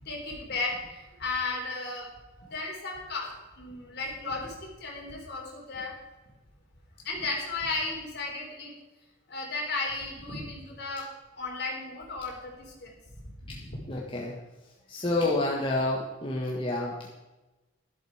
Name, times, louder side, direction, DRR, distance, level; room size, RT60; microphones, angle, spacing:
voice 1, 0.0-2.1 2.4-5.9 7.0-8.7 9.3-11.0 11.4-12.9 13.4-13.8, left 3 dB, 55° left, -1 dB, 3.8 m, -34 dB
voice 2, 13.9-14.3 14.9-17.1, left 2 dB, 25° left, -3 dB, 1.5 m, -29 dB
12.0 x 11.5 x 4.9 m, 1.1 s
head